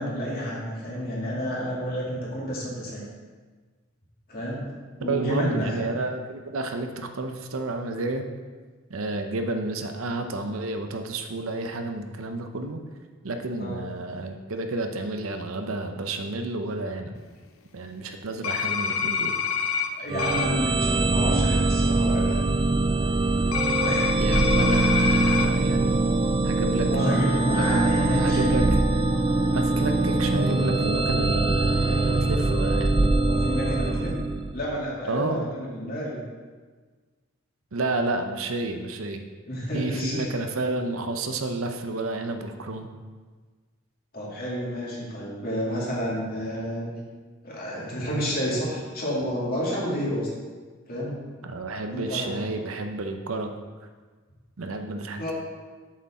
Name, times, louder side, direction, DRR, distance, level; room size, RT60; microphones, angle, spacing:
voice 1, 0.0-3.0 4.3-4.7 5.0-5.8 13.6-13.8 20.0-22.4 23.8-24.2 26.9-28.6 30.2-30.3 33.3-34.2 34.5-36.2 39.5-40.3 44.1-46.9 47.4-50.3 50.9-51.2 51.9-52.4 55.2-55.3, equal, 45° left, -5 dB, 2.3 m, -30 dB
voice 2, 5.0-8.3 8.9-12.8 13.2-17.2 17.7-19.4 24.2-26.0 26.4-28.8 29.5-32.9 35.1-35.5 37.7-39.2 39.7-42.9 51.4-53.5 54.6-55.3, right 2 dB, 80° right, 6 dB, 0.7 m, -30 dB
sound 1, 18.4-19.9 20.2-20.4 23.5-25.5, left 6 dB, 85° left, 0.6 m, -26 dB
sound 2, 20.1-34.8, right 2 dB, 25° right, 0.3 m, -23 dB
7.4 x 6.6 x 4.2 m, 1.4 s
head